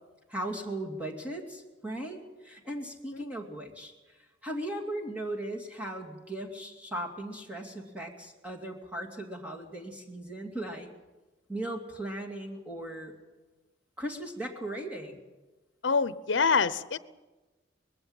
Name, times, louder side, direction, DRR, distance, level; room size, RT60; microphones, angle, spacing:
voice 1, 0.3-3.9 4.4-10.9 11.5-13.1 14.0-15.2, right 1 dB, 10° right, 0 dB, 2.5 m, -37 dB
voice 2, 15.8-17.0, left 5 dB, 75° left, 15 dB, 0.8 m, -26 dB
21.0 x 15.5 x 8.9 m, 1.2 s
head